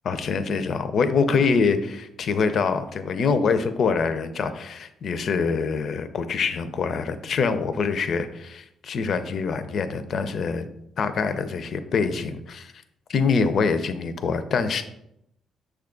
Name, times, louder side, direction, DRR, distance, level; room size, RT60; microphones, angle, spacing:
voice 1, 0.0-10.7 11.0-12.7 13.1-14.8, left 5 dB, 60° left, 10 dB, 0.4 m, -25 dB
6.2 x 2.3 x 3.7 m, 0.80 s
cardioid pair, 90°, 0 cm